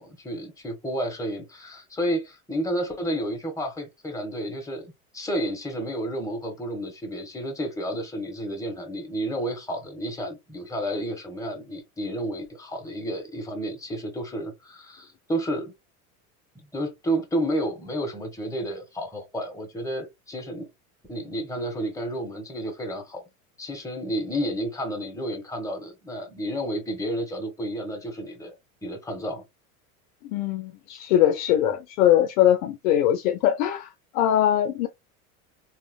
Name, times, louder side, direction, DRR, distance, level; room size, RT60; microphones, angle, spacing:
voice 1, 0.0-4.9 5.1-15.7 16.7-20.7 21.1-23.2 23.6-28.6 28.8-29.4, right 1 dB, 10° left, 1.2 m, -31 dB
voice 2, 30.2-34.9, left 11 dB, 70° left, 0.6 m, -22 dB
3.0 x 2.7 x 2.2 m
hypercardioid pair, 85°, 42 cm